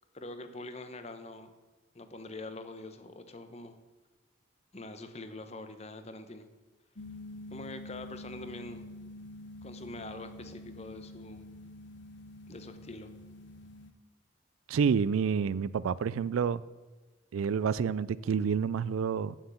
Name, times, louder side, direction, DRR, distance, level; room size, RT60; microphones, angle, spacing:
voice 1, 0.1-1.5 1.9-3.8 4.7-6.5 7.5-8.9 9.6-11.5 12.5-13.1, left 2 dB, 30° left, 0.9 m, -44 dB
sound 1, 7.0-13.9, left 1 dB, 60° left, 0.9 m, -47 dB
voice 2, 14.7-16.6 17.3-19.3, right 6 dB, 85° right, 0.4 m, -28 dB
9.1 x 7.4 x 7.1 m
head